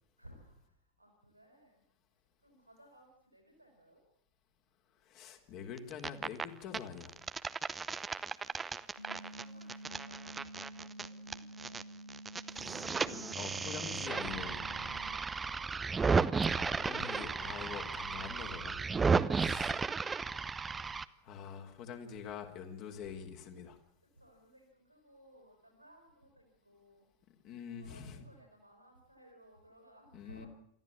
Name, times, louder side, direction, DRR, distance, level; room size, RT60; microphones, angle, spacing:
voice 1, 0.2-1.8 2.4-4.0 8.1-9.0 9.3-11.8 15.0-15.7 19.0-20.5 24.0-27.1 27.7-30.5, equal, 90° right, 3 dB, 5.4 m, -60 dB
voice 2, 5.0-7.1 12.5-14.6 16.4-18.8 19.4-19.7 21.2-23.8 27.3-28.3 30.1-30.5, left 7 dB, 40° left, 4 dB, 3.6 m, -45 dB
sound 1, 5.8-6.4 6.7-11.8 12.1-21.0, right 5 dB, 15° right, 0.8 m, -34 dB
sound 2, 9.0-15.2, right 1 dB, 80° left, 2.6 m, -50 dB
24.0 x 14.5 x 8.6 m, 0.72 s
figure-of-eight pair, 90°, 0 cm